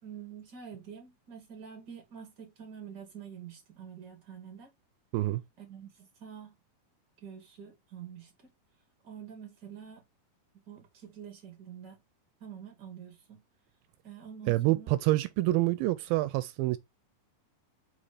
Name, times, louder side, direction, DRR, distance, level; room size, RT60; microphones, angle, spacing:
voice 1, 0.0-4.7 5.6-6.5 7.2-8.5 9.0-10.0 10.5-12.0 12.4-13.4 14.0-14.9, right 8 dB, 35° right, 2.6 m, -47 dB
voice 2, 14.5-16.8, right 18 dB, 85° right, 2.4 m, -27 dB
5.6 x 4.0 x 4.9 m
omnidirectional pair, 4.2 m